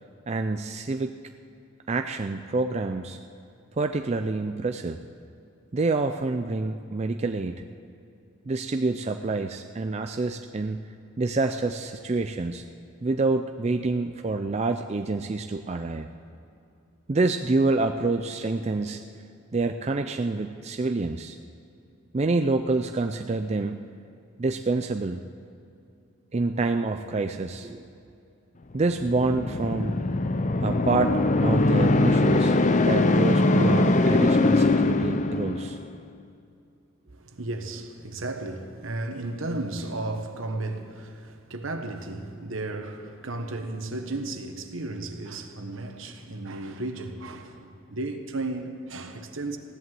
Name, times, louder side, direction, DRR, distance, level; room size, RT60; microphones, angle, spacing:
voice 1, 0.3-1.1 1.9-3.2 3.8-5.0 5.7-7.6 8.5-10.8 11.2-12.6 13.0-16.1 17.1-19.0 19.5-21.4 22.1-23.8 24.4-25.2 26.3-27.8 28.7-30.0 30.6-32.6 32.8-35.8, right 3 dB, 30° right, 0.4 m, -27 dB
sound 1, 28.9-35.9, left 2 dB, 35° left, 0.6 m, -22 dB
voice 2, 37.1-49.6, right 2 dB, 70° right, 1.3 m, -34 dB
16.0 x 11.0 x 7.7 m
head